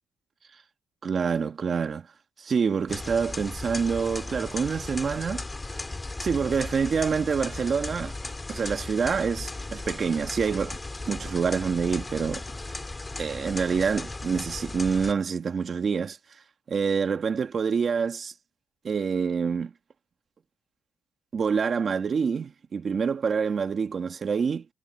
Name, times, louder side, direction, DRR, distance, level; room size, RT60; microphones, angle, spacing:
voice 1, 1.0-2.1 2.4-5.4 6.2-8.1 8.5-10.8 11.1-12.4 13.2-16.2 16.7-18.3 18.8-19.7 21.3-24.6, right 6 dB, 45° right, 1.6 m, -26 dB
sound 1, 2.9-15.1, left 2 dB, 20° left, 4.4 m, -36 dB
cardioid pair, 90°, 0 cm